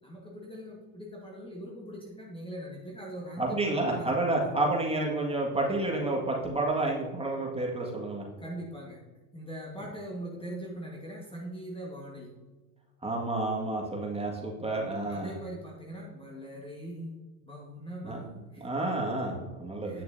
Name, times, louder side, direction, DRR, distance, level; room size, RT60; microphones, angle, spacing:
voice 1, 0.0-4.5 8.4-9.0 9.3-12.3 15.1-18.7 19.8-20.0, equal, 10° left, -2 dB, 1.4 m, -41 dB
voice 2, 3.4-8.2 13.0-15.3 18.0-18.2 18.6-20.0, right 2 dB, 10° right, -1 dB, 1.8 m, -30 dB
9.1 x 6.5 x 2.7 m, 1.2 s
hypercardioid pair, 90°, 46 cm